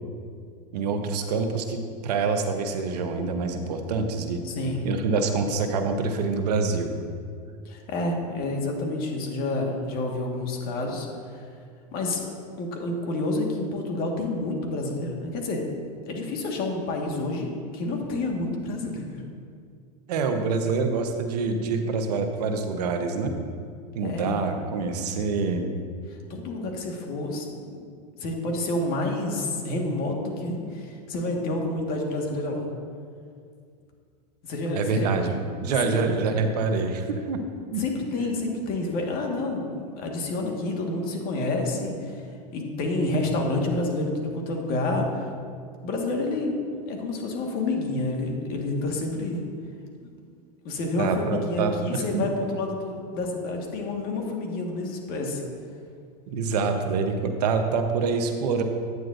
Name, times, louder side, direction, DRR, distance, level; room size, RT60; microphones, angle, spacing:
voice 1, 0.7-4.4 4.8-6.9 20.1-23.3 23.9-25.6 34.7-35.3 35.6-37.8 51.0-52.3 56.3-58.6, right 4 dB, 75° right, 6 dB, 0.9 m, -26 dB
voice 2, 4.4-4.8 7.6-11.5 11.9-12.3 12.6-15.6 16.1-19.2 24.0-24.4 26.3-27.8 28.2-32.7 34.4-35.3 35.8-36.2 37.8-42.2 42.5-45.3 45.8-49.4 50.6-55.4, left 2 dB, 45° left, 1 dB, 1.6 m, -29 dB
9.3 x 8.8 x 2.6 m, 2.2 s
hypercardioid pair, 115°, 21 cm